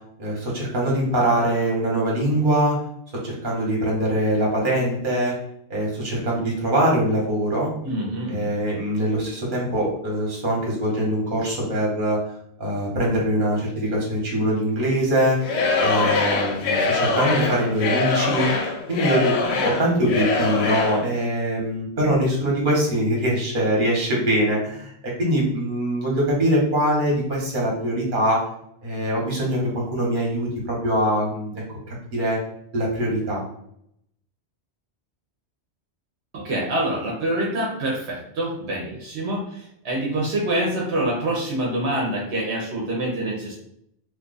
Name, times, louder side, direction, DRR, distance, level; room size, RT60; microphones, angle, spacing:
voice 1, 0.2-2.8 3.2-5.4 5.7-7.7 8.3-12.2 12.6-15.4 15.8-18.5 18.9-28.4 28.8-31.5 31.9-32.4 32.7-33.4, right 1 dB, 50° right, -3 dB, 1.2 m, -23 dB
voice 2, 7.8-8.5 36.3-43.6, right 1 dB, 80° right, -2 dB, 1.0 m, -26 dB
Singing / Crowd, 15.4-21.1, left 3 dB, 80° left, 0.9 m, -23 dB
2.9 x 2.3 x 3.9 m, 0.73 s
omnidirectional pair, 1.1 m